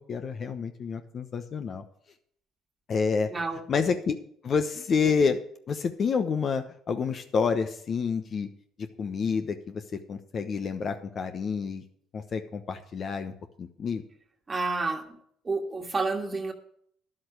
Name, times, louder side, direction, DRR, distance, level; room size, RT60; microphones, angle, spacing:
voice 1, 0.1-1.8 2.9-3.3 3.7-4.2 4.4-5.4 5.7-8.5 9.0-9.8 10.1-11.8 12.1-14.0, left 5 dB, 45° left, 1.0 m, -28 dB
voice 2, 3.3-3.6 14.5-15.1 15.4-16.5, right 3 dB, 30° right, 1.7 m, -29 dB
11.0 x 7.8 x 6.3 m
hypercardioid pair, 65°, 0 cm